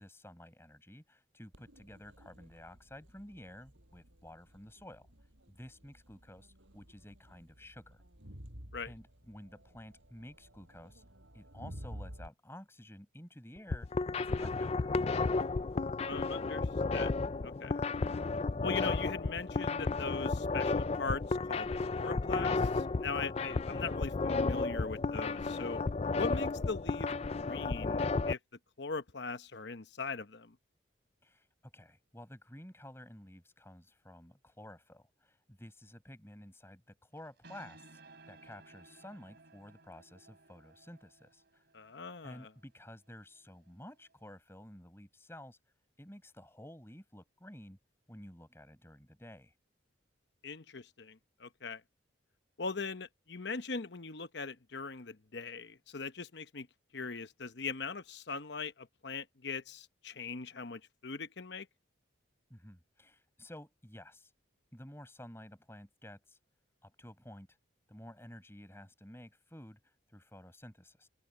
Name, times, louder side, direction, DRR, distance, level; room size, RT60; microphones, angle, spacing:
voice 1, 0.0-5.1 5.5-8.0 8.8-11.0 11.3-15.0 31.2-41.6 42.2-45.6 46.0-47.8 48.1-49.5 62.5-64.3 64.7-66.4 66.8-67.5 67.9-71.1, left 1 dB, 10° left, 7.9 m, -52 dB
Crowd, 1.5-12.3, equal, 75° right, 6.7 m, -52 dB
sound 1, 13.6-28.3, left 3 dB, 30° left, 0.4 m, -33 dB
voice 2, 16.1-17.1 17.4-17.8 18.6-25.8 26.1-28.4 28.8-30.6 41.7-42.5 50.4-51.8 52.6-56.7 56.9-61.7, left 4 dB, 60° left, 1.0 m, -40 dB
sound 2, 37.2-44.3, right 3 dB, 55° right, 3.5 m, -60 dB
open air
head